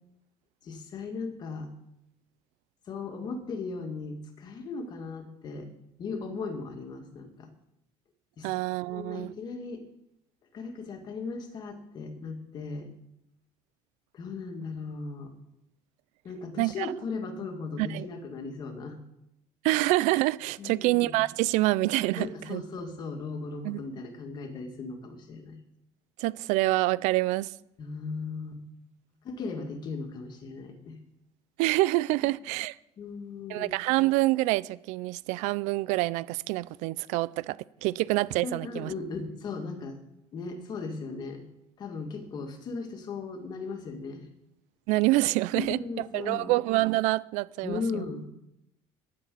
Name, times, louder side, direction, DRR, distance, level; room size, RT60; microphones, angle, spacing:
voice 1, 0.6-1.7 2.9-5.7 6.0-7.5 8.4-8.5 8.9-9.9 10.5-12.9 14.1-15.4 16.2-19.0 20.6-21.2 22.2-25.6 27.8-28.6 29.2-31.0 33.0-33.7 38.4-40.0 40.3-41.4 41.8-44.3 45.5-46.6 47.6-48.3, left 4 dB, 35° left, 2.1 m, -37 dB
voice 2, 8.4-9.3 16.6-16.9 17.8-18.1 19.6-22.6 23.6-23.8 26.2-27.5 31.6-32.8 33.5-37.6 37.8-38.9 44.9-45.8 46.1-48.0, right 19 dB, 75° right, 0.5 m, -26 dB
10.5 x 10.0 x 8.4 m
cardioid pair, 165°, 12 cm